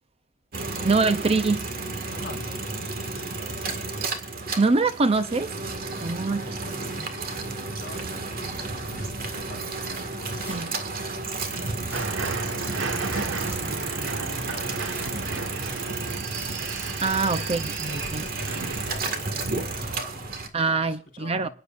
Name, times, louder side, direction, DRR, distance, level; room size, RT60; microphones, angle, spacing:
sound 1, 0.5-20.5, right 3 dB, 50° right, 1.9 m, -32 dB
voice 1, 0.8-1.6 4.6-5.5 6.0-6.4 10.5-10.7 17.0-18.2 20.5-21.5, right 3 dB, 30° right, 0.5 m, -24 dB
voice 2, 2.1-3.8 6.1-15.3 15.6-16.2 17.1-21.5, left 1 dB, 50° left, 4.5 m, -46 dB
sound 2, 10.2-10.7 11.7-12.2 12.9-13.7 14.7-15.2 16.3-16.6, equal, 10° right, 2.4 m, -47 dB
sound 3, 11.9-19.2, right 4 dB, 85° right, 1.4 m, -34 dB
27.5 x 9.8 x 2.5 m
head